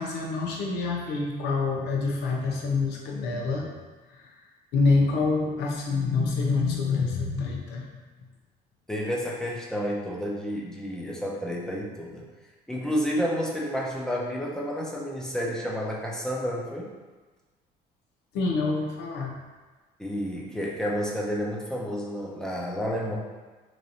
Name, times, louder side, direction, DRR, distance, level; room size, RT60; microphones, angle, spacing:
voice 1, 0.0-3.7 4.1-4.3 4.7-7.8 18.3-19.3, left 4 dB, 85° left, -1 dB, 0.7 m, -26 dB
voice 2, 8.9-12.3 12.7-16.9 20.0-23.1, equal, 5° left, -3 dB, 0.7 m, -30 dB
3.1 x 2.6 x 4.0 m, 1.3 s
cardioid pair, 110°, 17 cm